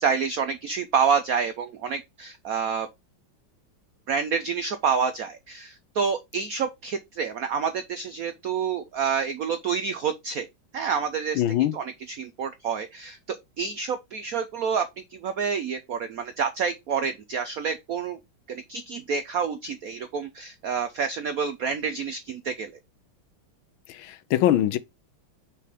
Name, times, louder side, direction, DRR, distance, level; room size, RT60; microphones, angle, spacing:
voice 1, 0.0-2.9 4.1-10.5 10.7-11.4 11.7-18.2 18.5-22.7, right 6 dB, 90° right, 0.7 m, -28 dB
voice 2, 11.4-11.7 23.9-24.8, left 12 dB, 75° left, 1.4 m, -22 dB
5.7 x 4.6 x 3.5 m
omnidirectional pair, 2.3 m